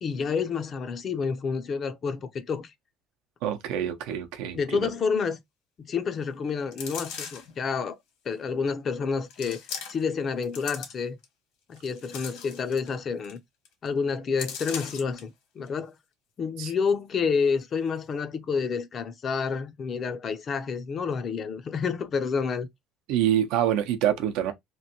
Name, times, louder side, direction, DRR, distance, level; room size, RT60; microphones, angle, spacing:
voice 1, 0.0-2.7 4.5-5.4 5.8-8.0 8.3-9.6 9.9-11.2 11.7-13.4 13.8-15.9 16.4-22.7, left 5 dB, 30° left, 0.4 m, -29 dB
voice 2, 3.4-4.9 16.6-16.7 23.1-24.5, right 10 dB, 80° right, 0.6 m, -26 dB
sound 1, 6.7-7.6 8.3-8.4 9.3-10.1 10.4-11.2 11.7-12.9 13.2-13.4 13.7-13.9 14.4-15.2 15.7-15.8, left 7 dB, 80° left, 1.3 m, -38 dB
3.0 x 2.5 x 2.7 m
cardioid pair, 165°, 0 cm